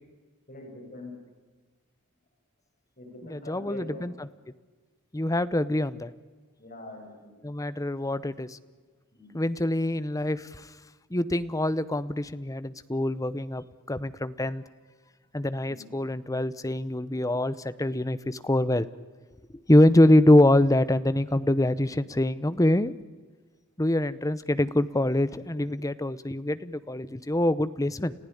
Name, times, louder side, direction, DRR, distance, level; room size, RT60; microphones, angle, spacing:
voice 1, 0.5-1.1 3.0-4.2 6.6-7.3 9.1-9.4 15.6-15.9, left 1 dB, 40° left, 1 dB, 7.6 m, -44 dB
voice 2, 3.3-4.1 5.1-6.1 7.4-8.6 9.3-10.7 11.1-14.6 15.3-18.9 19.7-22.9 23.8-28.1, left 1 dB, 15° left, 15 dB, 0.8 m, -24 dB
30.0 x 15.5 x 10.0 m, 1.4 s
head